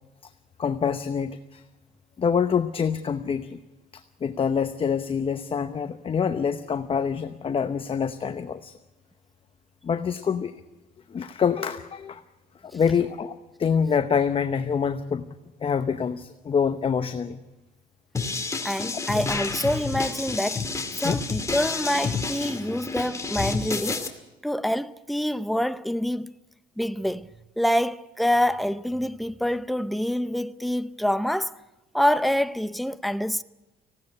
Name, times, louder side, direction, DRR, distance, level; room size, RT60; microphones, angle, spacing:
voice 1, 0.6-1.6 2.2-3.6 3.9-8.7 9.8-10.6 11.1-12.2 12.6-15.2 15.6-17.4 21.0-21.1, left 6 dB, 35° left, 0.9 m, -26 dB
sound 1, 18.1-24.1, left 4 dB, 20° left, 2.3 m, -29 dB
voice 2, 18.6-20.7 21.0-24.0 24.4-26.3 26.8-27.3 27.6-31.6 31.9-33.4, equal, ahead, 0.6 m, -26 dB
19.0 x 16.5 x 9.7 m
cardioid pair, 110°, 17 cm